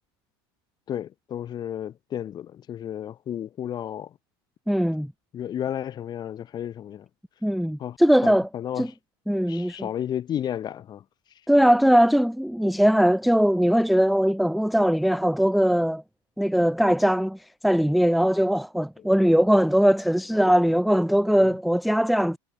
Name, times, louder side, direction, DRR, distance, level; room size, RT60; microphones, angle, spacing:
voice 1, 0.9-4.2 5.3-7.1 7.8-8.9 9.5-11.4 19.0-19.4 21.4-21.5, left 10 dB, 35° left, 3.8 m, -33 dB
voice 2, 4.7-5.1 7.4-8.5 8.8-8.9 9.3-9.9 11.5-16.0 16.4-22.4, equal, ahead, 0.7 m, -20 dB
supercardioid pair, 125°, 12 cm